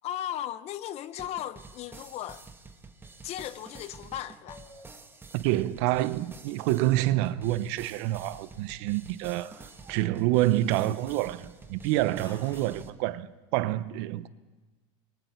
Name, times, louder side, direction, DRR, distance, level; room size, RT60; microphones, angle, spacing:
voice 1, 0.0-2.4 3.2-4.6, left 11 dB, 45° left, 0.9 m, -36 dB
sound 1, 1.2-12.9, right 4 dB, 15° right, 1.5 m, -49 dB
sound 2, 4.5-5.0 6.5-7.7 8.5-8.9 9.5-11.6 12.2-12.8, left 1 dB, 20° left, 7.6 m, -56 dB
voice 2, 5.3-9.5 9.9-13.3 13.5-14.3, right 15 dB, 65° right, 0.9 m, -27 dB
28.0 x 23.0 x 4.5 m
supercardioid pair, 120°, 15 cm